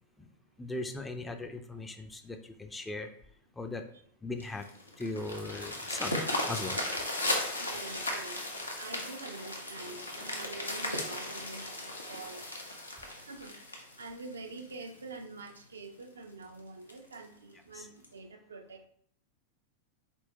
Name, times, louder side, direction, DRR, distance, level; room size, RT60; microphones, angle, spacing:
voice 1, 0.6-3.1 3.6-3.9 4.2-4.7 5.0-6.2 6.5-6.8 17.7-17.9, left 2 dB, 10° left, 6 dB, 0.5 m, -38 dB
sound 1, 4.4-14.9 15.5-15.6 16.0-16.1 16.4-16.5 16.9-17.2 18.0-18.1, left 1 dB, 80° left, 0.8 m, -36 dB
voice 2, 7.6-12.4 13.1-18.9, right 3 dB, 70° right, 5 dB, 0.5 m, -46 dB
4.4 x 4.1 x 2.9 m, 0.62 s
figure-of-eight pair, 90°, 0 cm